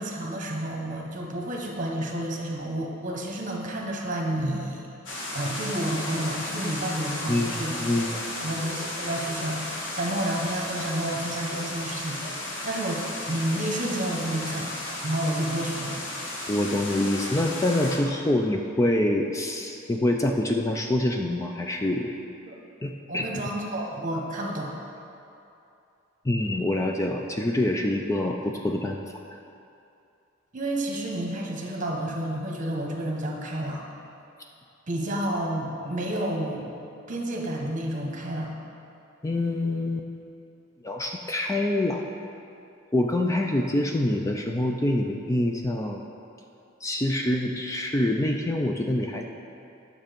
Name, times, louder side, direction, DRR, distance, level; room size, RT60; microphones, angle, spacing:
voice 1, 0.0-4.9 5.3-7.7 8.4-12.2 12.6-14.7 15.0-16.0 22.5-22.6 23.1-24.7 30.5-33.8 34.9-36.7 37.1-38.5, right 1 dB, 45° right, 0 dB, 1.3 m, -30 dB
sound 1, 5.1-18.0, left 1 dB, 80° left, 1.6 m, -34 dB
voice 2, 7.3-8.1 16.5-22.1 22.8-23.2 26.2-29.0 29.3-29.4 39.2-40.1 40.8-42.1 42.9-46.0 46.8-49.3, left 1 dB, 15° left, 2 dB, 0.5 m, -26 dB
9.9 x 6.7 x 5.2 m, 2.6 s
head